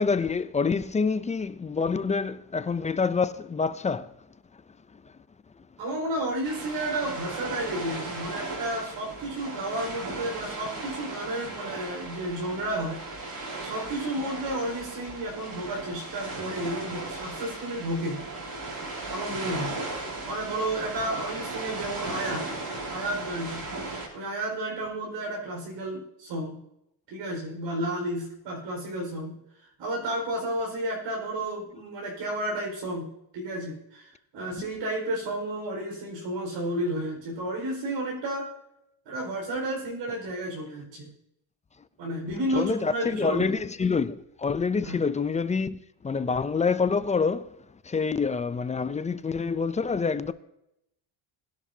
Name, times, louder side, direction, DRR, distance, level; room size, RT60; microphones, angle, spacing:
voice 1, 0.0-4.1 42.3-45.8 46.0-47.5 47.8-50.3, left 5 dB, 15° left, 0.4 m, -27 dB
voice 2, 5.8-18.2 19.1-19.8 20.2-22.5 22.9-23.7 24.1-26.6 27.1-29.3 29.8-33.1 33.3-38.5 39.0-41.1 42.0-43.5 44.8-45.0, right 1 dB, 70° right, 4.9 m, -32 dB
sound 1, 6.4-24.1, right 3 dB, 45° right, 5.3 m, -36 dB
21.0 x 11.5 x 2.8 m
cardioid pair, 110°, 47 cm